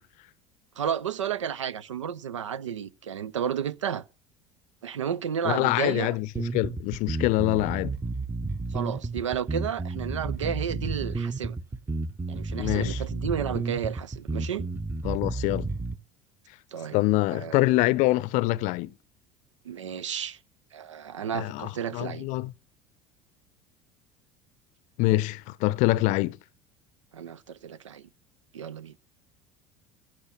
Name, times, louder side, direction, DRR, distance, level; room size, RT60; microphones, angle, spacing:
voice 1, 0.8-4.0 4.8-6.2 8.7-11.6 12.3-14.6 16.7-17.0 17.3-17.7 19.6-20.4 20.7-22.3 27.1-28.1 28.5-29.0, right 8 dB, 80° right, 0.6 m, -32 dB
voice 2, 5.4-6.3 6.5-7.9 12.6-13.0 15.0-15.7 16.9-18.9 21.3-22.5 25.0-26.4, left 18 dB, 55° left, 0.6 m, -25 dB
sound 1, 6.4-16.0, right 3 dB, 15° right, 0.8 m, -32 dB
15.0 x 6.4 x 7.0 m
figure-of-eight pair, 70°, 15 cm